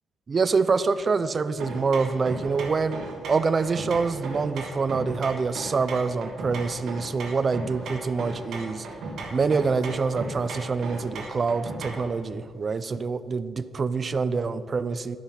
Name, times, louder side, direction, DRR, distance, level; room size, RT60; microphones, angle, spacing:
voice 1, 0.3-8.9 9.3-15.2, right 4 dB, 40° right, 13 dB, 0.4 m, -26 dB
sound 1, 1.6-12.1, right 2 dB, 65° right, 1.7 m, -37 dB
11.5 x 5.7 x 5.8 m, 2.5 s
cardioid pair, 90°, 0 cm